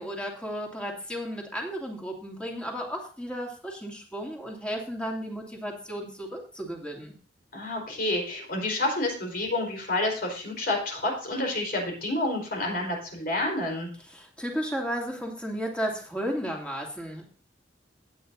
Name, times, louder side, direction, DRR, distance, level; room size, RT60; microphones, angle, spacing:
voice 1, 0.0-7.1 14.1-17.3, equal, 5° left, 0 dB, 2.6 m, -34 dB
voice 2, 7.5-13.9, left 2 dB, 55° left, 1 dB, 4.4 m, -29 dB
16.5 x 9.0 x 2.7 m, 0.40 s
head